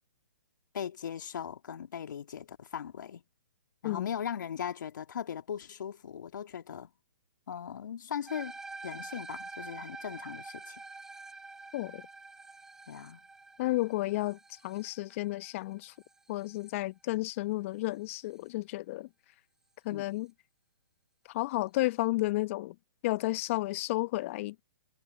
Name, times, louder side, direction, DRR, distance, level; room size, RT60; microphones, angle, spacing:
voice 1, 0.7-3.2 3.8-6.9 7.5-8.5 8.8-10.8 12.9-13.2 19.9-20.0, left 8 dB, 65° left, 2.3 m, -39 dB
sound 1, 8.3-16.7, right 3 dB, 5° right, 0.9 m, -47 dB
voice 2, 13.6-15.9 16.3-19.1 19.8-20.3 21.3-22.7 23.0-24.6, left 19 dB, 40° left, 0.9 m, -32 dB
hypercardioid pair, 130°, 11 cm